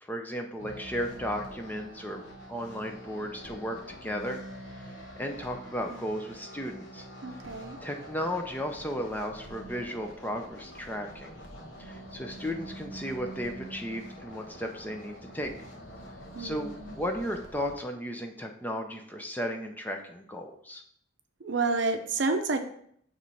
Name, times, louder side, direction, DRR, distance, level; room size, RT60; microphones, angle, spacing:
voice 1, 0.0-2.2 2.5-4.4 4.7-7.0 7.8-11.4 11.8-15.5 16.4-20.8, equal, 10° left, 4 dB, 0.5 m, -35 dB
sound 1, 0.6-17.7, equal, 80° left, 1.0 m, -45 dB
voice 2, 7.2-7.8 16.3-17.0 21.4-22.6, right 3 dB, 65° right, 7 dB, 0.6 m, -30 dB
6.5 x 3.1 x 5.4 m, 0.66 s
head